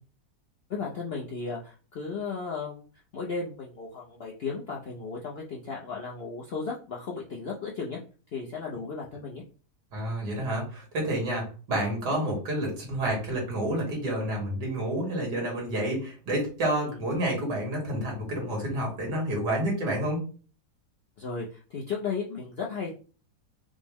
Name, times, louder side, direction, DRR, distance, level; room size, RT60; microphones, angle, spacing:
voice 1, 0.7-2.9 3.1-8.0 8.3-9.4 16.8-17.0 21.2-22.9, left 4 dB, 65° left, -2 dB, 0.6 m, -35 dB
voice 2, 9.9-20.2, right 1 dB, 90° right, -1 dB, 2.2 m, -29 dB
5.2 x 2.1 x 3.5 m, 0.38 s
omnidirectional pair, 1.7 m